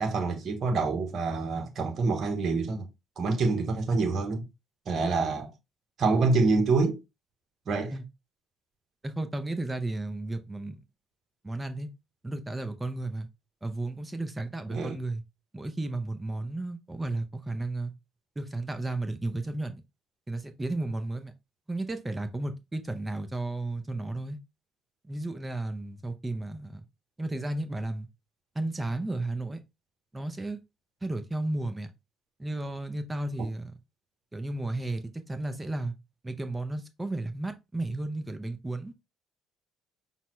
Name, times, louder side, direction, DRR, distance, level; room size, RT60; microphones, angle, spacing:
voice 1, 0.0-2.9 3.2-4.4 4.9-5.5 6.0-7.0 7.7-8.0 14.7-15.0, right 3 dB, 50° right, 1.0 m, -26 dB
voice 2, 9.0-10.8 11.4-11.9 12.2-13.3 13.6-15.2 15.5-17.9 18.4-19.8 20.3-21.3 21.7-24.4 25.0-26.9 27.2-28.1 28.5-29.6 30.1-30.6 31.0-31.9 32.4-33.7 34.3-35.9 36.2-38.9, right 2 dB, 20° right, 0.7 m, -33 dB
5.5 x 2.2 x 3.1 m
hypercardioid pair, 55°, 0 cm